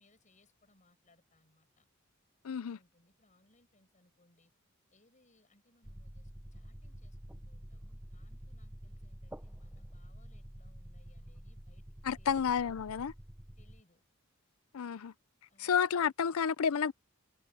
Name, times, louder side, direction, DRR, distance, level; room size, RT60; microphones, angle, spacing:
voice 1, 0.0-1.9 2.5-4.5 4.9-11.8 12.2-12.6 13.6-14.0 15.5-15.8, left 2 dB, 35° left, 8.0 m, -69 dB
voice 2, 2.4-2.8 12.0-13.1 14.7-15.1 15.6-16.9, left 7 dB, 85° left, 0.5 m, -30 dB
sound 1, 5.8-13.8, equal, 10° right, 0.7 m, -49 dB
head